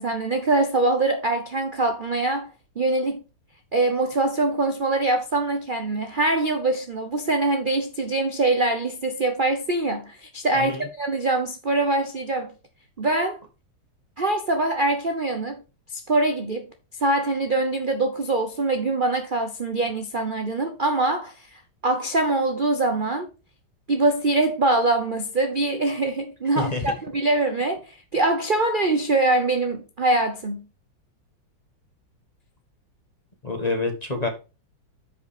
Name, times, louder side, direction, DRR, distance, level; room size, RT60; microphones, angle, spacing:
voice 1, 0.0-3.2 3.7-12.5 13.0-13.4 14.2-15.6 15.9-16.7 17.0-23.3 23.9-30.6, right 2 dB, 40° right, 0.7 m, -23 dB
voice 2, 10.5-10.9 26.5-26.9 33.4-34.3, left 3 dB, 25° left, 1.2 m, -27 dB
7.8 x 5.3 x 4.9 m
omnidirectional pair, 2.1 m